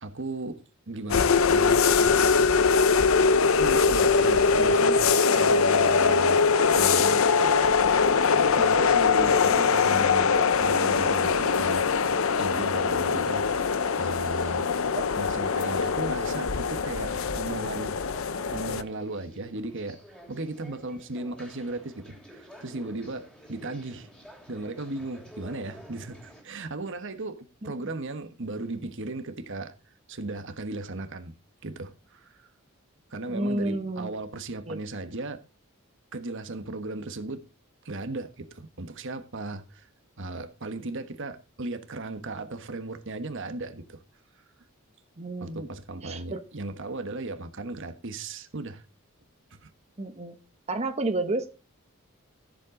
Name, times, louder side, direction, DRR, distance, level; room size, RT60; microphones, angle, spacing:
voice 1, 0.0-1.9 3.5-6.5 6.7-7.3 8.3-10.3 10.6-11.9 12.4-14.7 15.2-24.1 24.5-29.7 30.1-31.3 31.6-32.5 33.1-35.4 36.1-37.4 37.8-39.9 40.2-44.0 45.4-48.8 49.5-49.7, right 2 dB, 60° right, 1.3 m, -36 dB
sound 1, 1.1-18.8, left 5 dB, 70° left, 0.7 m, -22 dB
sound 2, 18.1-26.4, equal, 5° left, 3.2 m, -50 dB
voice 2, 33.3-34.1 34.7-34.8 45.2-45.7 46.0-46.4 50.0-50.4 50.7-51.5, right 2 dB, 30° right, 1.0 m, -30 dB
14.0 x 7.7 x 3.8 m
head